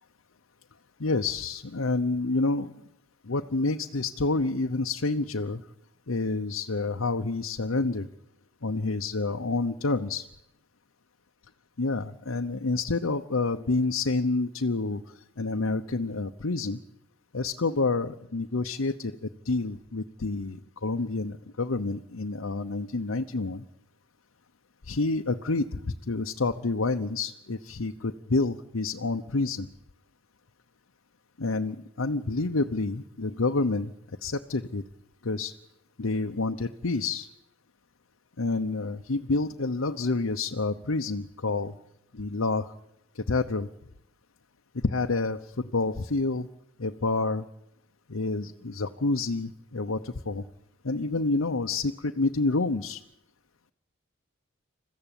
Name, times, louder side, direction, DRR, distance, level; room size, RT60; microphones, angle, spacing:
voice 1, 1.0-2.7 3.3-5.6 6.1-8.1 8.6-10.3 11.8-16.8 17.3-23.6 24.8-29.7 31.4-34.8 35.2-35.5 36.0-37.3 38.4-41.7 42.1-42.7 43.1-43.7 44.8-46.5 46.8-47.4 48.1-50.4 50.8-53.0, left 3 dB, 85° left, 5 dB, 0.9 m, -28 dB
28.5 x 15.0 x 9.1 m, 0.84 s
head